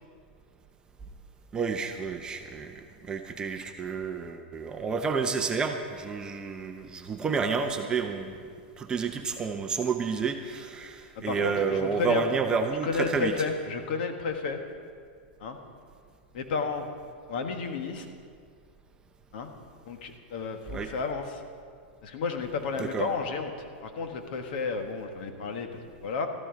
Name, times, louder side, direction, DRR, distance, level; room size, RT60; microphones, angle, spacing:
voice 1, 1.5-8.4 8.8-13.3 20.7-20.9 22.8-23.1, right 5 dB, 15° right, 5 dB, 0.6 m, -30 dB
voice 2, 11.1-12.3 12.8-14.6 15.4-15.6 16.3-16.9 17.3-18.1 19.3-19.5 19.8-21.4 22.0-23.5 23.8-26.3, left 5 dB, 60° left, 6 dB, 1.4 m, -32 dB
13.5 x 12.5 x 5.1 m, 2.1 s
supercardioid pair, 160°, 6 cm